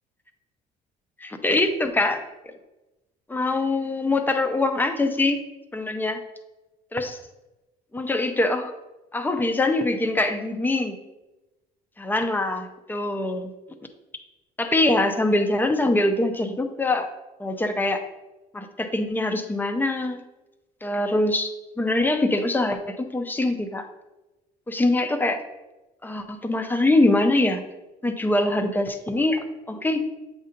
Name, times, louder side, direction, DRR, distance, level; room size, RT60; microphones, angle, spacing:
voice 1, 1.2-2.2 3.3-5.4 5.7-6.2 6.9-7.2 7.9-8.7 9.1-11.0 12.0-13.5 14.6-17.1 17.4-18.0 18.5-20.2 20.8-21.5 21.8-23.9 24.7-25.4 26.0-27.6 28.0-30.0, left 2 dB, 10° left, 6 dB, 0.7 m, -23 dB
7.9 x 2.8 x 5.1 m, 1.1 s
cardioid pair, 110°, 17 cm